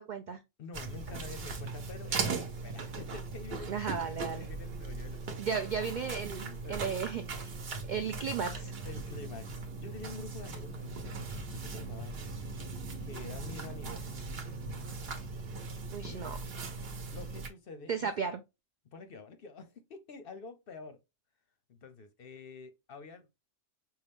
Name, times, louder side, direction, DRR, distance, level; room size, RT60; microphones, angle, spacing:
voice 1, 0.0-0.4 3.7-4.5 5.4-7.6 7.9-8.7 15.9-16.4 17.9-18.4, right 6 dB, 70° right, 0.4 m, -35 dB
voice 2, 0.6-5.5 6.4-6.8 8.8-12.2 13.0-14.0 14.7-14.9 16.1-16.3 17.1-18.1 18.9-21.0 21.7-23.3, left 4 dB, 55° left, 0.7 m, -48 dB
sound 1, 0.7-17.5, right 4 dB, 55° right, 1.0 m, -39 dB
5.4 x 2.3 x 3.4 m
omnidirectional pair, 1.3 m